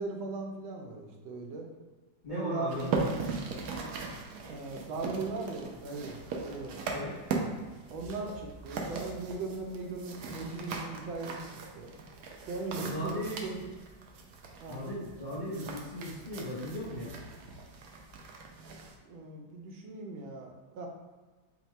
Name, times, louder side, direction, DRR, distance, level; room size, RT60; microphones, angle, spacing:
voice 1, 0.0-1.7 2.3-3.0 4.5-6.8 7.9-11.3 11.7-11.9 12.5-13.7 14.6-14.8 19.1-20.9, right 3 dB, 90° right, 1 dB, 1.5 m, -38 dB
voice 2, 2.2-3.2 6.8-7.2 12.7-13.4 14.7-17.2, equal, 40° left, -9 dB, 0.7 m, -37 dB
sound 1, 2.7-19.0, right 4 dB, 70° right, 0.9 m, -39 dB
4.4 x 2.2 x 4.1 m, 1.3 s
omnidirectional pair, 2.1 m